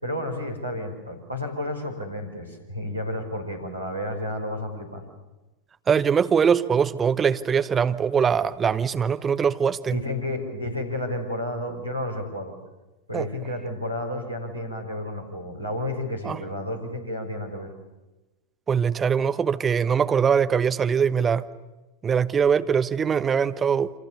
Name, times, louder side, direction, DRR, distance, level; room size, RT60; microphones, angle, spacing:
voice 1, 0.0-5.0 9.9-12.5 13.1-17.7, left 1 dB, 85° right, 5.1 m, -31 dB
voice 2, 5.9-10.0 13.1-13.3 16.2-16.4 18.7-21.5 22.0-23.9, right 7 dB, 20° right, 1.1 m, -22 dB
28.5 x 26.0 x 7.0 m
figure-of-eight pair, 90°, 0 cm